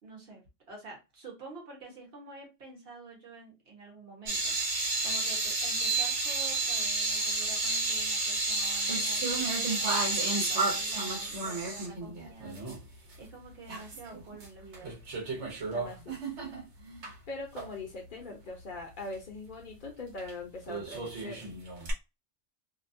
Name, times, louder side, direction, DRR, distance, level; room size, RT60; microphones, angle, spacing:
voice 1, 0.0-4.5 5.0-14.9, right 3 dB, 60° right, 0 dB, 1.2 m, -48 dB
sound 1, 4.3-12.8 13.1-13.2 13.7-14.5 14.7-17.1 17.6-17.7 20.2-20.3 20.7-21.9, right 3 dB, 80° right, 1.2 m, -31 dB
voice 2, 15.7-16.2 17.3-21.5, left 3 dB, 50° left, 1 dB, 0.7 m, -41 dB
2.7 x 2.1 x 2.6 m, 0.25 s
omnidirectional pair, 1.2 m